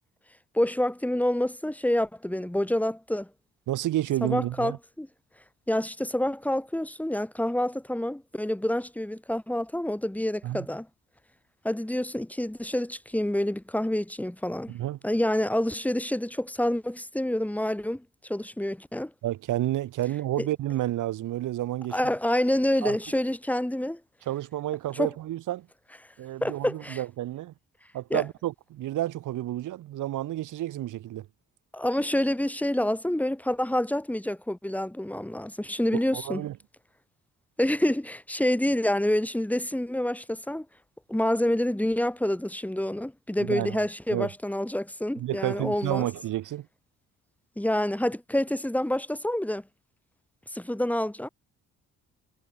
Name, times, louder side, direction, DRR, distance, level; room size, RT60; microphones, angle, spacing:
voice 1, 0.5-3.3 4.2-4.7 5.0-5.1 5.7-10.9 11.6-14.8 15.0-18.0 18.3-19.1 20.4-20.5 21.9-24.0 25.0-25.1 26.4-27.0 28.1-28.2 31.7-36.4 37.6-40.7 41.1-46.1 47.6-49.6 50.5-51.3, left 1 dB, 5° left, 6.0 m, -27 dB
voice 2, 3.7-4.8 10.4-10.7 14.7-15.0 19.2-22.0 22.8-23.0 24.2-25.7 26.2-27.5 27.9-31.3 35.9-36.6 43.4-43.8 44.1-44.3 45.2-46.7, right 14 dB, 85° right, 6.6 m, -30 dB
cardioid pair, 90°, 30 cm